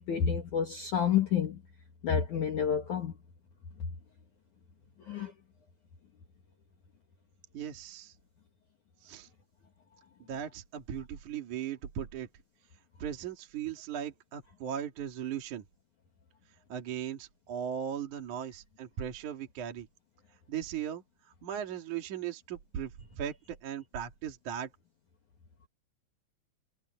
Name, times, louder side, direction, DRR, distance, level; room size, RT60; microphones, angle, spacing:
voice 1, 0.0-1.6 2.0-3.1 5.1-5.3, left 7 dB, 55° left, 2.5 m, -29 dB
voice 2, 7.5-8.1 9.0-9.3 10.3-12.3 13.0-15.6 16.7-19.9 20.5-21.0 21.4-24.7, right 9 dB, 50° right, 3.0 m, -38 dB
omnidirectional pair, 5.4 m